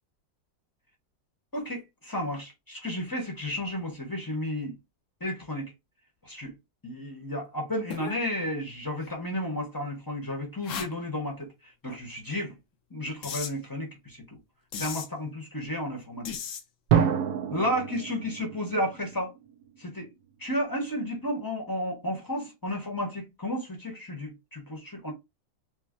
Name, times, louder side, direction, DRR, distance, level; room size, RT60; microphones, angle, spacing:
voice 1, 1.5-4.8 5.2-5.7 6.2-6.5 6.8-11.5 11.8-12.5 12.9-14.4 14.8-16.4 17.5-19.3 19.8-20.1 20.4-25.1, left 1 dB, 15° left, 0.7 m, -32 dB
sound 1, 7.9-8.2 9.0-9.1 10.6-10.9 13.2-13.5 14.7-15.1 16.3-16.6, left 7 dB, 65° left, 0.7 m, -35 dB
Drum, 16.9-19.6, right 8 dB, 70° right, 1.0 m, -27 dB
5.3 x 2.0 x 2.5 m
omnidirectional pair, 2.0 m